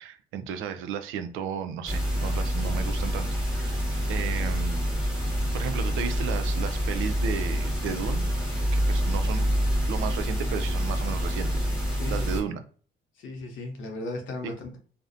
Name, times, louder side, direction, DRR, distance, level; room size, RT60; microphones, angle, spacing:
voice 1, 0.0-3.8 4.1-4.8 5.5-8.3 8.7-9.5 9.9-11.7 12.1-12.6 14.4-14.5, right 7 dB, 90° right, 10 dB, 0.4 m, -34 dB
sound 1, 1.9-12.4, equal, 5° right, 0.9 m, -27 dB
voice 2, 12.0-12.6 13.2-14.8, left 2 dB, 75° left, 3 dB, 0.7 m, -37 dB
2.4 x 2.1 x 2.6 m, 0.43 s
cardioid pair, 90°, 20 cm